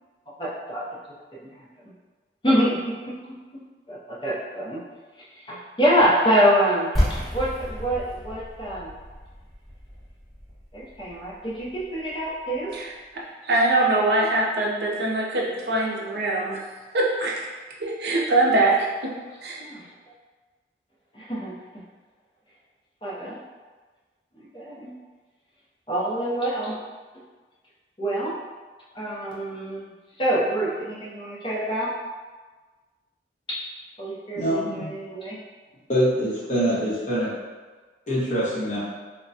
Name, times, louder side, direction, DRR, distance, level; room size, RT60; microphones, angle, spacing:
voice 1, 0.4-0.8 1.5-1.7 2.4-3.1 3.9-4.8 5.3-8.9 10.7-12.7 19.6-19.9 21.1-21.5 23.0-23.4 24.4-24.9 25.9-26.8 28.0-28.3 28.9-29.9 30.2-31.9 33.5-33.6 34.0-35.4, equal, 25° left, -7 dB, 0.6 m, -25 dB
sound 1, 6.9-12.7, equal, ahead, 0.9 m, -31 dB
voice 2, 12.7-16.6 16.9-17.5 17.8-19.1 19.4-19.6, right 2 dB, 70° right, -2 dB, 0.5 m, -23 dB
voice 3, 34.4-34.8 35.9-37.3 38.1-38.8, equal, 45° left, -10 dB, 1.1 m, -24 dB
3.4 x 2.1 x 2.7 m, 1.3 s
head